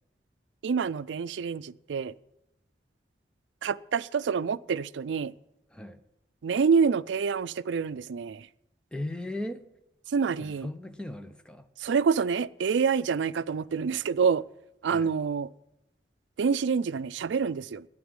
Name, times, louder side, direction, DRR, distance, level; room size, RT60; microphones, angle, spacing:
voice 1, 0.6-2.1 3.6-5.3 6.4-8.5 10.1-10.7 11.8-14.4 14.8-15.5 16.4-17.9, right 6 dB, 90° right, 17 dB, 0.4 m, -27 dB
voice 2, 5.7-6.0 8.9-9.7 10.4-11.7 14.8-15.2, left 1 dB, 5° left, 8 dB, 0.6 m, -37 dB
9.4 x 8.8 x 9.6 m, 0.86 s
head